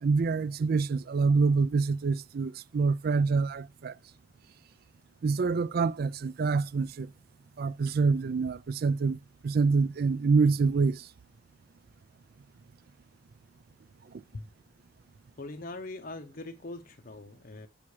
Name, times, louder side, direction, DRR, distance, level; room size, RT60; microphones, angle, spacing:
voice 1, 0.0-3.9 5.2-7.1 7.6-11.1, right 4 dB, 50° right, 0.4 m, -26 dB
voice 2, 15.4-17.7, left 2 dB, 45° left, 0.7 m, -41 dB
7.4 x 7.1 x 4.8 m
head